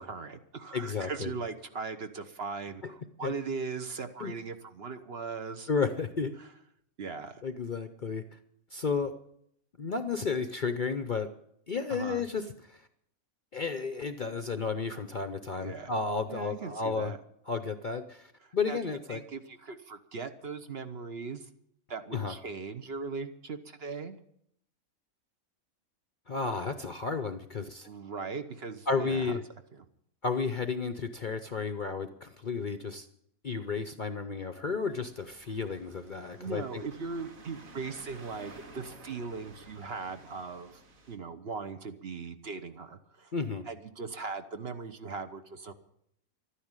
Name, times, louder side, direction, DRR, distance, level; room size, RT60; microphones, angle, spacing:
voice 1, 0.0-5.7 7.0-7.4 11.9-12.2 15.6-15.9 16.3-17.2 18.4-18.8 19.1-21.5 21.9-24.2 27.8-29.3 29.7-29.8 36.3-40.8 41.1-43.3 43.7-45.7, right 4 dB, 50° right, 9 dB, 1.0 m, -39 dB
voice 2, 0.7-1.3 3.2-3.3 4.2-4.3 5.7-6.4 7.4-8.4 8.7-9.1 9.8-11.3 11.7-12.8 13.5-17.1 17.5-19.2 22.1-22.3 26.3-27.9 28.9-29.4 30.2-33.1 33.4-36.8 43.3-43.6, left 4 dB, 45° left, 9 dB, 0.7 m, -32 dB
sound 1, 34.9-41.2, right 2 dB, 70° right, 2.1 m, -53 dB
13.0 x 10.0 x 8.8 m, 0.72 s
omnidirectional pair, 1.5 m